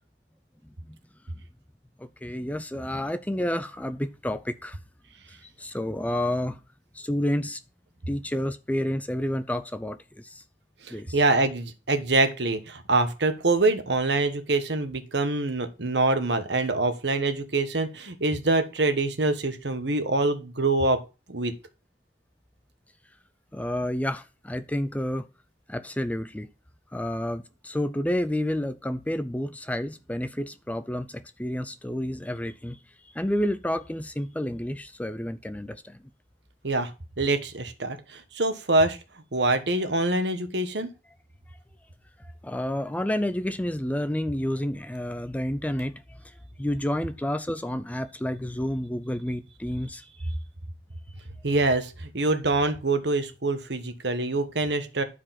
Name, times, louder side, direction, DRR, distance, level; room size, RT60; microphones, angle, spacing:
voice 1, 2.0-4.8 5.6-6.6 6.9-7.6 8.1-10.4 10.9-11.1 23.5-25.3 25.7-26.5 26.9-32.8 33.1-36.0 42.4-46.2 46.6-50.0, left 1 dB, 10° left, 0.5 m, -30 dB
voice 2, 10.8-21.0 21.3-21.5 36.6-36.9 37.2-39.0 39.3-40.9 51.4-55.0, right 2 dB, 70° right, 1.3 m, -25 dB
11.0 x 4.9 x 5.8 m
head